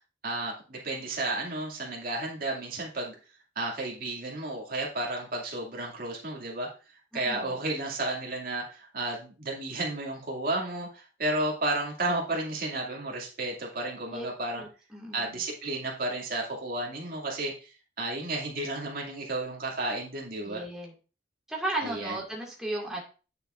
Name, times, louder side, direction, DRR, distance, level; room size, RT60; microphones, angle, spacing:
voice 1, 0.2-3.1 3.6-6.7 7.1-14.6 15.1-17.7 18.0-20.6 21.8-22.1, right 2 dB, 55° right, -2 dB, 2.4 m, -32 dB
voice 2, 7.2-7.6 14.1-14.3 14.6-15.4 20.4-20.9 21.5-23.0, right 2 dB, 5° right, -3 dB, 2.0 m, -35 dB
9.1 x 6.9 x 2.5 m, 0.34 s
head